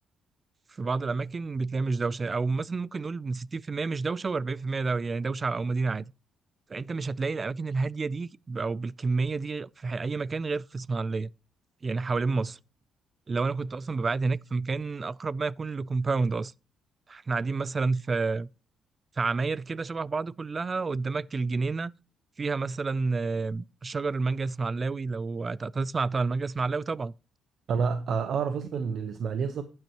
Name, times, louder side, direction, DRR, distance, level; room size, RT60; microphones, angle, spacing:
voice 1, 0.7-6.1 6.7-11.3 11.8-12.6 13.3-16.5 17.1-18.5 19.2-21.9 22.4-27.1, right 4 dB, 35° right, 0.4 m, -29 dB
voice 2, 27.7-29.6, right 6 dB, 60° right, 1.0 m, -29 dB
11.5 x 9.5 x 3.0 m
cardioid pair, 90°, 0 cm